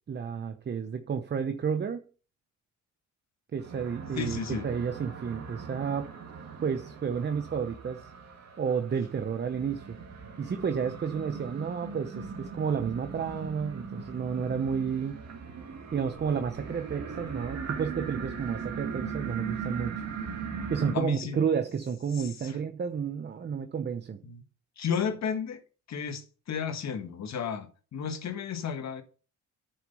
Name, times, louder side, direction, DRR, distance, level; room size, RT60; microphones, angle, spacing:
voice 1, 0.1-2.0 3.5-4.4 4.6-6.1 6.6-8.1 8.6-10.0 10.4-15.2 15.9-19.9 20.7-24.2, right 6 dB, 35° right, 0.9 m, -31 dB
sound 1, 3.6-21.0, right 5 dB, 60° right, 2.3 m, -39 dB
voice 2, 4.1-4.7 20.9-21.4 22.1-22.6 24.2-24.4 24.8-25.6 25.9-29.0, left 6 dB, 60° left, 1.7 m, -33 dB
9.8 x 6.3 x 5.6 m
cardioid pair, 90°, 30 cm